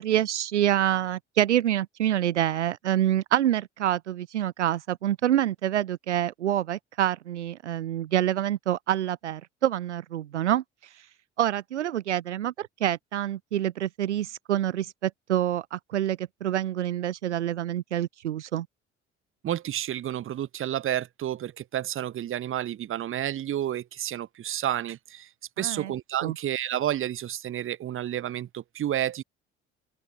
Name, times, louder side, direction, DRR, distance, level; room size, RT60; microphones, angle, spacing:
voice 1, 0.0-11.0 11.4-18.7 25.6-25.9 26.2-26.3, right 11 dB, 80° right, 0.7 m, -27 dB
voice 2, 19.4-25.3 25.6-29.2, right 11 dB, 35° right, 1.0 m, -30 dB
open air
figure-of-eight pair, 55°, 34 cm